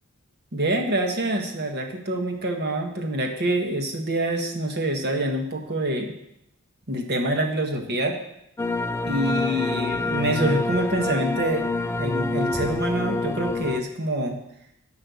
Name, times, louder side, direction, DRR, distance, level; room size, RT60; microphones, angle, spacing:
voice 1, 0.5-6.1 6.9-8.2 9.1-11.6 12.0-14.4, right 1 dB, 50° right, 3 dB, 1.5 m, -26 dB
sound 1, 8.6-13.8, left 3 dB, 10° left, 0.3 m, -26 dB
10.5 x 5.6 x 7.0 m, 0.78 s
head